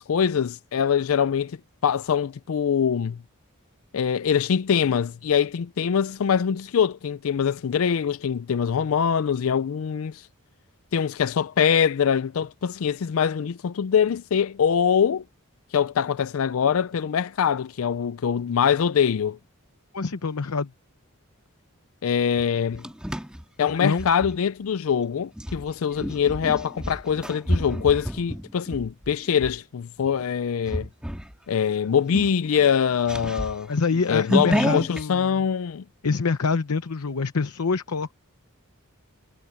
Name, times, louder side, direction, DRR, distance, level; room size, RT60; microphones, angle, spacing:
voice 1, 0.0-1.6 1.8-3.2 3.9-10.3 10.9-15.2 15.7-19.4 22.0-22.8 23.6-30.9 31.5-33.7 34.1-35.8, left 7 dB, 65° left, 0.4 m, -23 dB
voice 2, 19.9-20.7 23.6-24.1 33.7-35.4 36.0-38.1, left 4 dB, 85° left, 0.8 m, -26 dB
sound 1, 22.4-24.4 25.3-29.6 30.0-30.3 30.7-31.3 31.7-31.8 32.1-35.0, equal, 5° right, 1.8 m, -30 dB
head